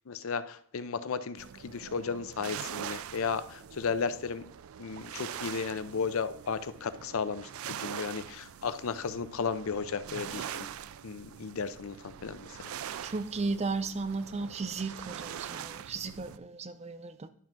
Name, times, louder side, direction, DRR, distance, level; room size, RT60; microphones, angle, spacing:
voice 1, 0.1-4.4 4.8-10.7 11.0-12.5, left 5 dB, 80° left, 13 dB, 0.5 m, -34 dB
sound 1, 1.4-16.4, right 9 dB, 85° right, 0.4 m, -43 dB
voice 2, 13.0-17.3, right 3 dB, 30° right, 11 dB, 0.5 m, -35 dB
11.0 x 3.7 x 5.9 m, 0.67 s
head